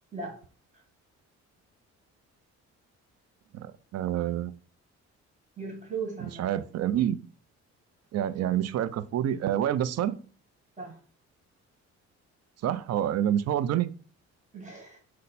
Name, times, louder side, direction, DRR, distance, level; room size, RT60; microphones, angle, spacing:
voice 1, 3.5-4.5 6.2-7.2 8.1-10.2 12.6-13.9, right 11 dB, 55° right, 0.4 m, -28 dB
voice 2, 5.6-6.6 10.8-11.0 14.5-15.0, right 4 dB, 25° right, 1.6 m, -38 dB
5.4 x 2.1 x 4.1 m
cardioid pair, 90°, 30 cm